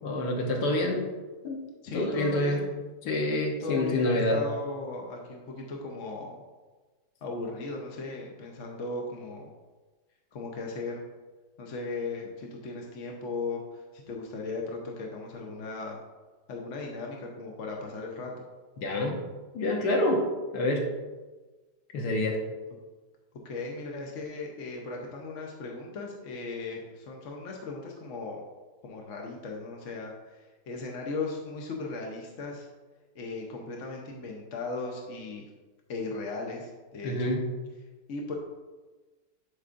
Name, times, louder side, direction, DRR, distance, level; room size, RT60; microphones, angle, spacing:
voice 1, 0.0-1.0 1.4-1.6 1.9-2.7 3.0-4.4 18.8-19.2 19.5-20.2 20.5-20.9 21.9-22.4 37.0-37.4, left 1 dB, 80° left, 0 dB, 1.6 m, -27 dB
voice 2, 1.8-2.7 3.6-6.4 7.2-9.5 10.3-11.0 11.6-16.0 16.5-18.3 23.4-28.4 28.8-32.7 33.1-35.5 35.9-37.1 38.1-38.3, left 3 dB, 55° left, 0 dB, 1.0 m, -37 dB
11.0 x 4.8 x 2.5 m, 1.3 s
omnidirectional pair, 1.8 m